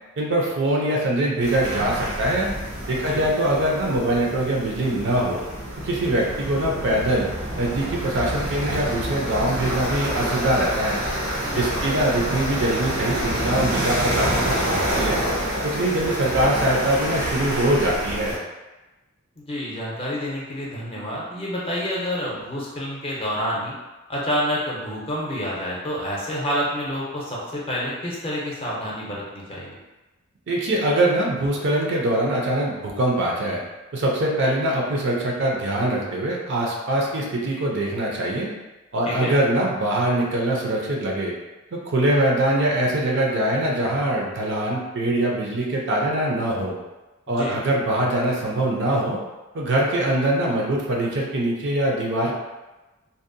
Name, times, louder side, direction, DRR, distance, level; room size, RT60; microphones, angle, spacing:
voice 1, 0.2-2.5 2.9-5.4 5.8-7.3 7.6-11.0 11.6-15.2 15.6-18.4 30.5-33.6 33.9-38.5 38.9-41.3 41.7-46.8 47.3-49.2 49.5-52.4, right 1 dB, 60° right, -2 dB, 0.5 m, -23 dB
sound 1, 1.4-18.4, equal, 80° right, 0.9 m, -27 dB
voice 2, 11.4-11.8 19.4-23.7 24.1-29.8 39.0-39.3 47.4-47.6, equal, 25° left, -5 dB, 0.6 m, -28 dB
2.6 x 2.1 x 2.5 m, 1.1 s
head